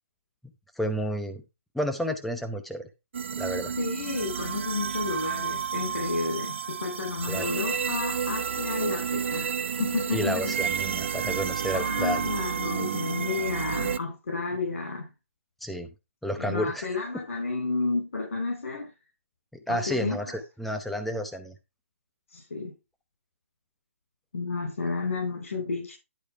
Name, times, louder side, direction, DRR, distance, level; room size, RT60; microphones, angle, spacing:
voice 1, 0.8-1.4 1.7-2.9 3.4-3.7 7.3-7.5 10.1-12.3 15.6-15.9 16.2-16.9 19.5-20.3 20.6-21.5, equal, ahead, 0.8 m, -30 dB
sound 1, 3.1-14.0, right 7 dB, 60° right, 0.5 m, -31 dB
voice 2, 3.8-9.5 9.8-10.5 11.7-15.1 16.4-18.9 19.7-20.4 22.3-22.7 24.3-25.9, left 3 dB, 75° left, 4.2 m, -31 dB
10.5 x 5.2 x 4.7 m
hypercardioid pair, 170°, 7 cm